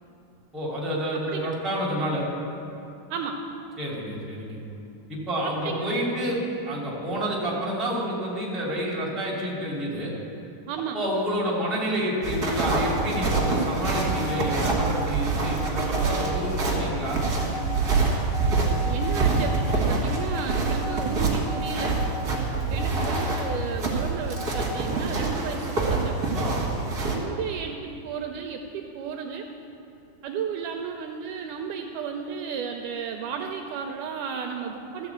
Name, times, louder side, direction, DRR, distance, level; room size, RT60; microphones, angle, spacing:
voice 1, 0.5-2.2 3.8-4.6 5.1-10.1 10.9-17.2 22.3-22.6 26.3-26.7, equal, ahead, -5 dB, 1.5 m, -29 dB
voice 2, 3.1-3.4 5.4-5.9 10.7-11.0 18.9-22.0 22.7-26.2 27.1-29.5 30.2-35.1, right 6 dB, 80° right, 4 dB, 2.0 m, -33 dB
sound 1, 12.2-27.2, right 3 dB, 35° right, 1.7 m, -26 dB
Bowed string instrument, 12.4-17.9, right 1 dB, 70° left, 3.4 m, -40 dB
sound 2, 12.8-24.8, left 2 dB, 85° left, 3.0 m, -38 dB
14.0 x 4.9 x 8.1 m, 2.7 s
omnidirectional pair, 3.9 m